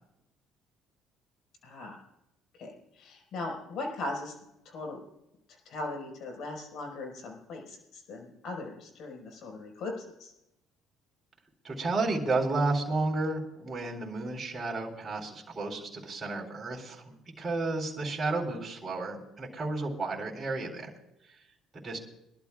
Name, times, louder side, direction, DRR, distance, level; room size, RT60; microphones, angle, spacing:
voice 1, 1.6-2.0 2.6-4.4 4.6-5.0 5.5-9.9 10.2-10.3 18.0-18.1, left 2 dB, 60° left, 2 dB, 5.0 m, -39 dB
voice 2, 11.6-20.9 21.7-22.0, right 3 dB, 35° right, 0 dB, 3.9 m, -32 dB
25.0 x 12.0 x 2.4 m, 0.85 s
supercardioid pair, 80°, 0 cm